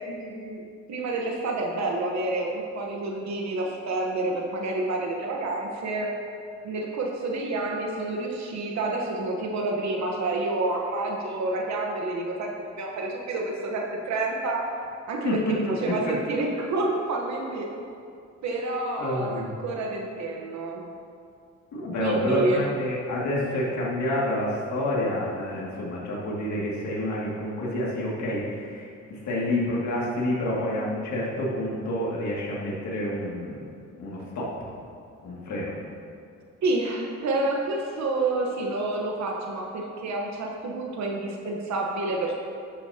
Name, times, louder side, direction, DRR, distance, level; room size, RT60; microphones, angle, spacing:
voice 1, 0.1-0.6 0.9-6.1 6.6-14.7 15.1-17.7 18.4-20.9 22.0-22.6 36.6-42.4, right 2 dB, 65° right, 0 dB, 1.1 m, -29 dB
voice 2, 15.6-16.1 19.0-19.5 21.7-33.6 34.0-34.5 35.2-35.7, left 1 dB, 70° left, -5 dB, 2.3 m, -28 dB
11.5 x 8.7 x 2.8 m, 2.4 s
cardioid pair, 90°, 30 cm